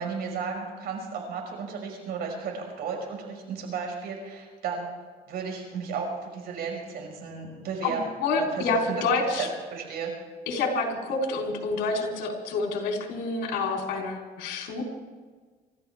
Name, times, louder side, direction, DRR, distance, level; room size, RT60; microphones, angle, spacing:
voice 1, 0.0-4.9 5.3-8.0 8.4-9.0 9.3-10.1, right 5 dB, 70° right, 1 dB, 5.4 m, -34 dB
voice 2, 7.8-9.5 10.5-14.8, left 3 dB, 85° left, 0 dB, 3.8 m, -28 dB
27.0 x 14.0 x 3.5 m, 1.5 s
cardioid pair, 110°, 17 cm